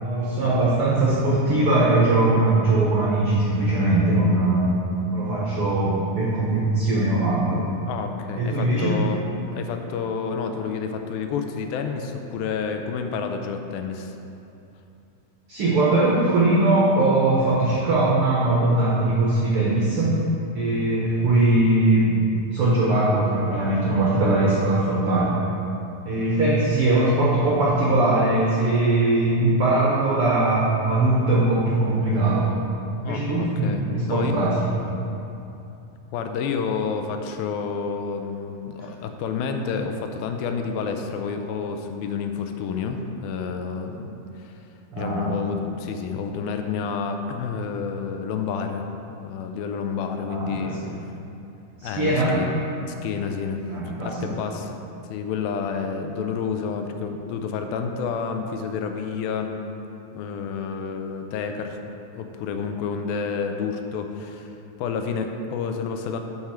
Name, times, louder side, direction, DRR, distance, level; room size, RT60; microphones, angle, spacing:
voice 1, 0.0-4.7 5.1-7.6 8.4-8.9 15.5-20.1 20.5-22.2 22.4-25.3 26.1-32.5 33.0-34.6 44.9-45.3 50.2-50.9 51.8-52.4 53.7-54.3, right 2 dB, 80° right, -6 dB, 1.2 m, -21 dB
voice 2, 7.9-9.3 9.5-14.2 33.0-33.8 34.1-34.3 36.1-44.5 45.0-50.8 51.8-52.5 52.9-54.8 55.1-59.6 60.1-61.8 62.1-66.2, left 6 dB, 85° left, 5 dB, 2.4 m, -29 dB
11.0 x 4.8 x 4.3 m, 2.8 s
omnidirectional pair, 4.2 m